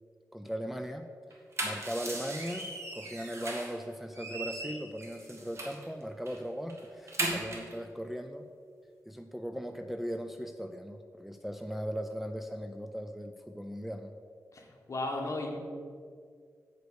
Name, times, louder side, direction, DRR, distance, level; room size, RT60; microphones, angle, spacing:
voice 1, 0.3-1.1 1.6-8.4 9.1-14.1, equal, 5° right, 5 dB, 0.4 m, -38 dB
sound 1, 1.3-3.8 4.1-5.9 6.3-6.4 6.7-7.7, right 2 dB, 45° right, 1.7 m, -37 dB
voice 2, 14.5-15.6, left 2 dB, 50° left, 1 dB, 1.5 m, -35 dB
8.0 x 5.0 x 6.3 m, 2.1 s
wide cardioid pair, 90°, 7 cm